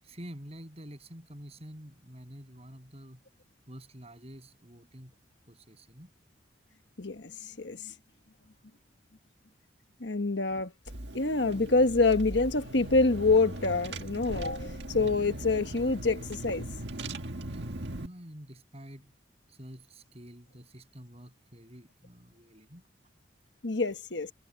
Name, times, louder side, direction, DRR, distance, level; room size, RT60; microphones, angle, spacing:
voice 1, 0.0-3.2 3.7-5.1 5.5-6.1 17.2-19.1 19.5-22.8, equal, 35° right, 7.2 m, -48 dB
voice 2, 7.0-7.9 10.0-10.7 11.1-16.7 23.6-24.3, left 3 dB, 65° left, 1.3 m, -26 dB
Car / Engine, 10.9-18.1, right 1 dB, 65° right, 1.8 m, -39 dB
head